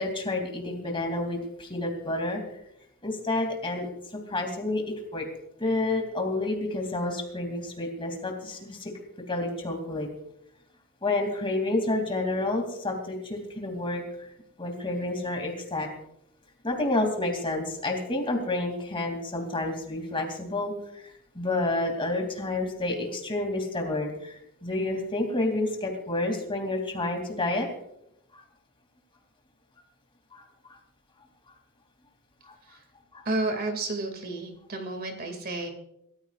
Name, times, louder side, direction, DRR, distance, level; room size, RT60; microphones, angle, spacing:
voice 1, 0.0-2.4 3.0-5.3 5.6-8.9 9.3-10.1 11.0-14.3 14.6-15.9 16.6-27.7 28.3-28.4 30.3-30.8 32.4-32.5 33.1-33.2, left 2 dB, 25° left, 2 dB, 2.8 m, -29 dB
voice 2, 33.2-35.7, right 2 dB, 45° right, 5 dB, 2.4 m, -31 dB
26.0 x 14.5 x 2.5 m, 0.79 s
head